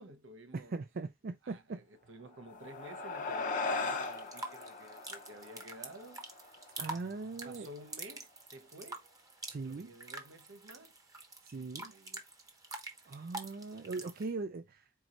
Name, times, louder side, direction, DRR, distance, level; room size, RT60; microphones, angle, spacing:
voice 1, 0.0-0.8 1.4-6.2 7.4-9.0 9.6-11.0 11.5-12.2, right 1 dB, 70° right, 0.9 m, -52 dB
voice 2, 0.5-1.8 6.8-7.7 9.5-9.9 11.5-11.9 13.1-14.9, right 3 dB, 50° right, 0.4 m, -40 dB
sound 1, 2.3-7.1, left 3 dB, 40° left, 0.7 m, -39 dB
sound 2, 4.0-14.3, right 2 dB, 15° right, 0.9 m, -47 dB
4.6 x 4.2 x 2.5 m
head